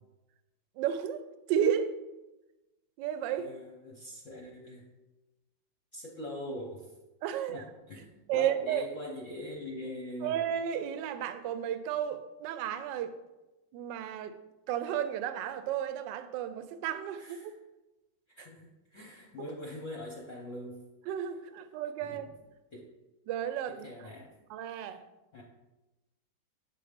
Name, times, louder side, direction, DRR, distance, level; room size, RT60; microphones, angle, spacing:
voice 1, 0.8-1.2 1.5-1.9 3.0-3.5 7.2-7.6 8.3-8.9 10.2-13.1 13.7-14.3 14.7-17.5 21.1-22.3 23.3-23.9 24.5-25.0, right 9 dB, 75° right, 11 dB, 1.2 m, -32 dB
voice 2, 3.4-4.9 5.9-6.9 7.5-8.1 8.3-10.4 17.2-17.5 18.4-20.8 22.0-22.3 22.7-22.8 23.7-24.3 25.3-25.4, left 1 dB, 50° left, -1 dB, 1.0 m, -42 dB
7.7 x 4.1 x 5.0 m, 1.0 s
omnidirectional pair, 2.1 m